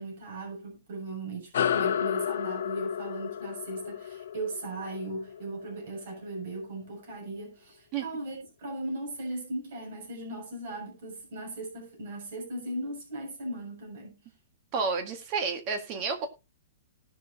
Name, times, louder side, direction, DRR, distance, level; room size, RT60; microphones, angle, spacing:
voice 1, 0.0-14.2, right 2 dB, 60° right, 7.0 m, -38 dB
sound 1, 1.5-6.4, left 9 dB, 70° left, 1.3 m, -32 dB
voice 2, 14.7-16.3, right 5 dB, 30° right, 1.8 m, -30 dB
18.5 x 6.4 x 2.8 m
hypercardioid pair, 165°, 0 cm